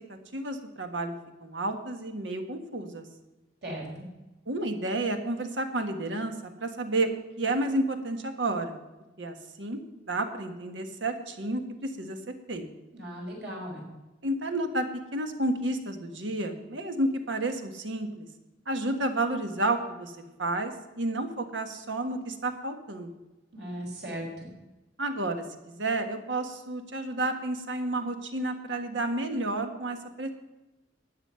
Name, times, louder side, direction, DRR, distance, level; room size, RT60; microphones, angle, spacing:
voice 1, 0.1-1.1 1.4-3.0 4.5-7.1 7.4-8.8 9.2-9.8 10.1-12.7 14.2-14.9 15.1-18.3 18.7-20.1 20.4-23.1 25.0-30.3, right 2 dB, 90° right, 6 dB, 1.5 m, -31 dB
voice 2, 3.6-4.0 12.9-13.8 23.5-24.5, right 1 dB, 65° right, -1 dB, 4.9 m, -37 dB
13.0 x 9.2 x 5.7 m, 1.1 s
head